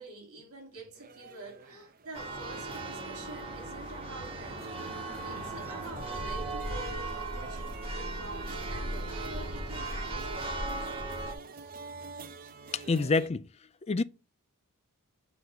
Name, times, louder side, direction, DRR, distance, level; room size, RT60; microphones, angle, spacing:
voice 1, 0.0-4.7 5.2-10.4 11.6-11.7, right 2 dB, 70° right, 3.1 m, -47 dB
sound 1, 0.9-13.3, right 4 dB, 40° right, 0.8 m, -48 dB
Church bell, 2.1-11.3, right 2 dB, 25° right, 1.6 m, -37 dB
voice 2, 12.7-13.5 13.9-14.0, left 4 dB, 30° left, 0.4 m, -27 dB
7.6 x 4.1 x 6.9 m
head